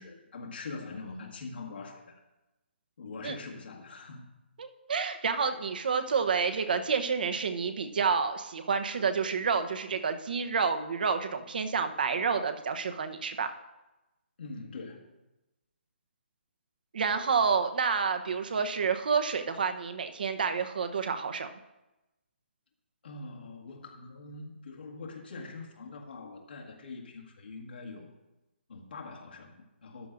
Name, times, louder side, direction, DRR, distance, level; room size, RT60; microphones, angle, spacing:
voice 1, 0.0-2.2 3.0-4.3 14.4-15.1 23.0-28.1 28.7-30.1, left 3 dB, 60° left, 0 dB, 1.8 m, -43 dB
voice 2, 4.6-13.6 16.9-21.5, right 5 dB, 50° right, 8 dB, 0.9 m, -29 dB
13.0 x 11.0 x 2.6 m, 1.0 s
hypercardioid pair, 170°, 6 cm